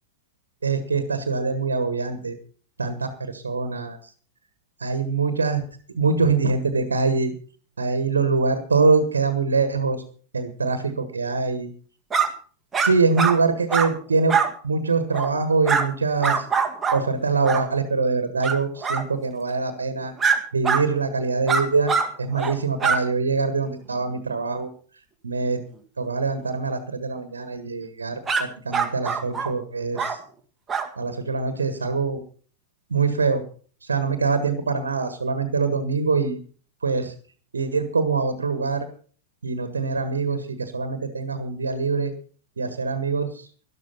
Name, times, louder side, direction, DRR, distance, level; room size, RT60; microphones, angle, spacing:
voice 1, 0.6-2.3 2.8-4.0 4.8-5.6 5.9-7.3 7.8-10.0 10.3-11.7 12.8-14.4 14.6-16.5 16.9-20.1 20.5-21.9 22.2-24.7 25.2-25.6 26.0-30.2 31.0-32.2 32.9-33.4 33.8-36.4 36.8-37.1 37.5-38.8 39.4-42.1 42.6-43.5, right 4 dB, 75° right, 10 dB, 1.6 m, -24 dB
sound 1, 12.1-12.3 12.7-12.9 13.2-13.4 13.7-13.9 14.3-14.5 15.1-15.3 15.6-15.9 16.2-17.0 17.4-17.6 18.4-18.6 18.8-19.0 20.2-20.4 20.6-20.8 21.5-22.1 22.3-22.6 22.8-23.0 28.3-28.4 28.7-29.5 30.0-30.2 30.7-30.9, right 5 dB, 15° right, 1.9 m, -22 dB
13.0 x 12.0 x 5.6 m, 0.43 s
figure-of-eight pair, 90°, 0 cm